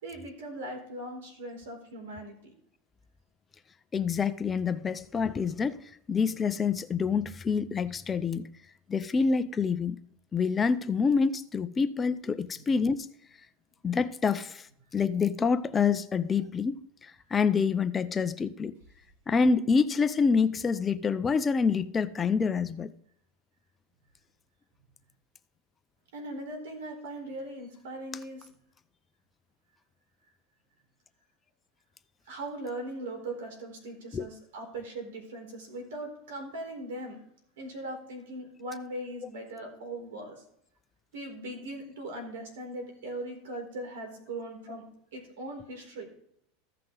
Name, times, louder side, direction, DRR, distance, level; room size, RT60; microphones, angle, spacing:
voice 1, 0.0-2.5 12.5-12.6 26.1-28.5 32.3-37.2 37.6-40.4 41.1-44.8 45.1-46.1, right 1 dB, 90° right, 4.0 m, -39 dB
voice 2, 3.9-5.8 6.1-8.5 8.9-10.0 10.3-13.1 13.8-14.7 14.9-18.7 19.3-22.9 34.1-34.3, left 5 dB, 20° left, 0.5 m, -27 dB
15.0 x 5.9 x 3.8 m
supercardioid pair, 140°, 0 cm